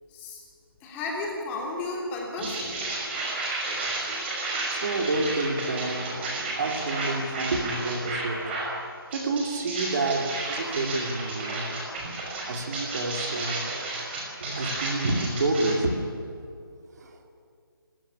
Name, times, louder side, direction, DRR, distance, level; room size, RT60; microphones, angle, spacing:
voice 1, 0.1-0.4 0.8-2.6, left 2 dB, 15° left, -2 dB, 3.2 m, -33 dB
sound 1, 2.4-8.7 9.1-15.7, right 2 dB, 25° right, 5.5 m, -32 dB
voice 2, 4.7-6.2 6.6-8.5 9.1-11.8 12.5-14.0 14.4-16.2 16.9-17.2, right 2 dB, 45° right, 3 dB, 2.7 m, -29 dB
24.0 x 14.5 x 10.0 m, 2.4 s
figure-of-eight pair, 160°, 13 cm